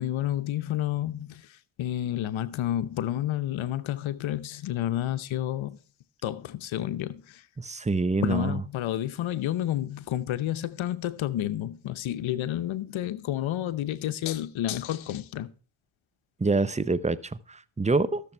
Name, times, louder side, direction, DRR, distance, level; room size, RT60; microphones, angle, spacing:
voice 1, 0.0-1.4 1.8-5.8 6.2-7.4 8.2-15.5, left 12 dB, 80° left, 0.9 m, -30 dB
voice 2, 7.6-8.6 16.4-17.2 17.5-18.2, right 3 dB, 15° right, 0.7 m, -25 dB
13.5 x 6.9 x 4.4 m
cardioid pair, 60°, 47 cm